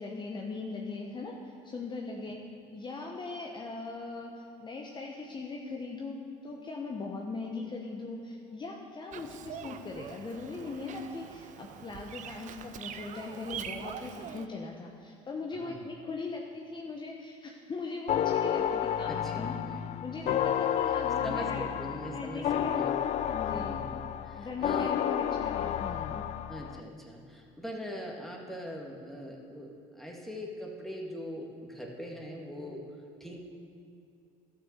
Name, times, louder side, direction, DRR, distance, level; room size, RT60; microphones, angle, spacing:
voice 1, 0.0-2.4 2.7-6.2 6.4-19.5 20.0-21.7 22.1-22.8 23.2-23.8 24.4-26.2, left 3 dB, 30° left, 0 dB, 1.1 m, -39 dB
Bird vocalization bird call bird song, 9.1-14.5, right 8 dB, 50° right, 0.6 m, -44 dB
voice 2, 15.5-15.9 19.1-19.9 21.2-23.0 23.5-24.0 24.2-25.0 26.5-33.4, equal, ahead, -1 dB, 2.1 m, -41 dB
sound 1, 18.1-26.8, left 10 dB, 45° left, 0.4 m, -31 dB
12.0 x 6.4 x 6.7 m, 2.5 s
supercardioid pair, 80°, 16 cm